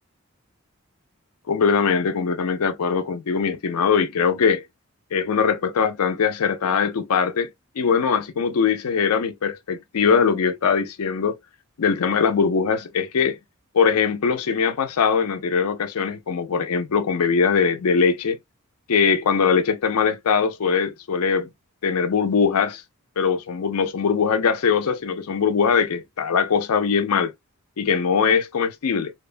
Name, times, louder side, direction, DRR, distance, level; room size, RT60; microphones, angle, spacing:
voice 1, 1.5-4.6 5.1-7.5 7.8-11.3 11.8-13.4 13.7-18.4 18.9-21.5 21.8-22.8 23.2-27.3 27.8-29.1, left 6 dB, 85° left, 0.5 m, -21 dB
2.8 x 2.1 x 2.4 m
head